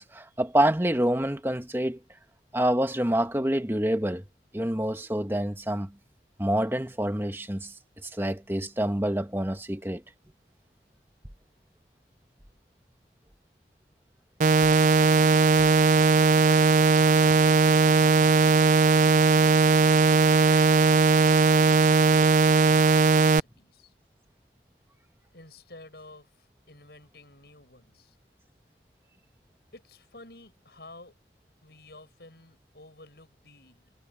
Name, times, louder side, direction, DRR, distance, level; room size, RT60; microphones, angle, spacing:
voice 1, 0.0-2.0 2.5-4.2 4.5-5.9 6.4-7.7 8.0-10.0, right 1 dB, 15° right, 1.4 m, -27 dB
sound 1, 14.4-23.4, right 4 dB, 45° right, 0.3 m, -19 dB
voice 2, 16.3-17.6 25.3-28.2 29.7-31.1 31.6-33.9, left 2 dB, 65° left, 7.6 m, -51 dB
head